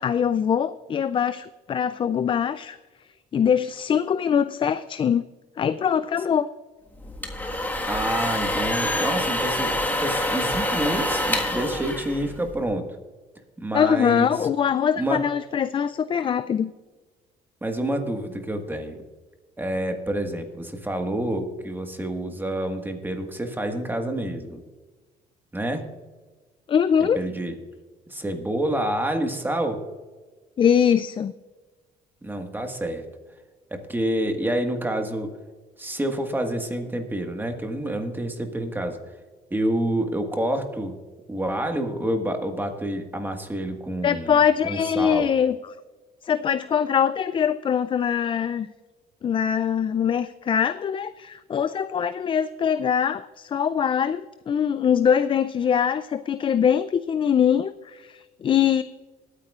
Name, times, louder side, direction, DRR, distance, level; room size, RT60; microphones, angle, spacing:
voice 1, 0.0-2.8 3.3-5.2 5.6-6.5 13.7-16.7 26.7-27.2 30.6-31.3 44.0-45.6 46.2-48.7 49.2-58.8, left 8 dB, 30° left, 14 dB, 0.3 m, -22 dB
sound 1, 7.0-12.7, left 1 dB, 10° left, 1.5 m, -26 dB
voice 2, 7.9-12.8 13.6-14.5 15.0-15.2 17.6-19.0 19.6-24.6 25.5-25.8 27.1-27.5 28.1-29.8 32.2-33.0 33.7-35.3 35.8-39.0 39.5-40.9 41.3-45.3, right 1 dB, 10° right, 5 dB, 1.5 m, -28 dB
20.5 x 9.6 x 2.4 m, 1.3 s
cardioid pair, 110°, 17 cm